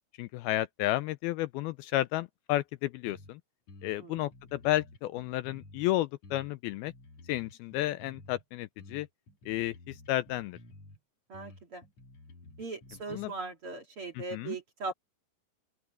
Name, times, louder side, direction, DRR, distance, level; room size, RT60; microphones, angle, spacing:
voice 1, 0.2-3.4 3.8-6.9 7.3-9.1 9.5-10.6 13.1-13.3 14.1-14.6, left 15 dB, 80° left, 2.3 m, -32 dB
sound 1, 3.0-3.3 3.7-5.9 6.2-8.4 8.8-11.0 11.3-13.3, left 2 dB, 45° left, 3.6 m, -52 dB
voice 2, 11.3-11.8 12.6-14.9, right 3 dB, 40° right, 2.5 m, -39 dB
open air
omnidirectional pair, 4.7 m